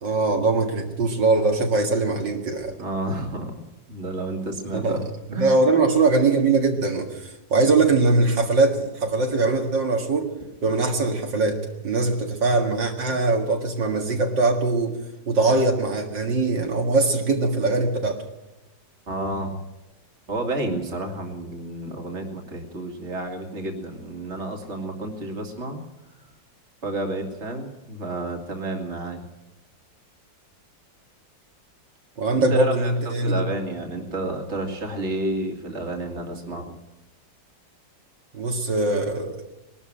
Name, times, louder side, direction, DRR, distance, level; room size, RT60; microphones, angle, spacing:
voice 1, 0.0-2.8 4.7-5.0 5.3-10.3 10.6-15.0 15.3-18.2 32.2-33.4 38.3-39.4, right 3 dB, 70° right, 2 dB, 2.7 m, -22 dB
voice 2, 2.8-3.5 3.9-5.0 5.3-5.6 19.1-19.6 20.3-25.8 26.8-29.2 32.4-36.7, right 2 dB, 35° right, 3 dB, 2.6 m, -30 dB
21.0 x 12.5 x 10.0 m, 0.97 s
omnidirectional pair, 2.0 m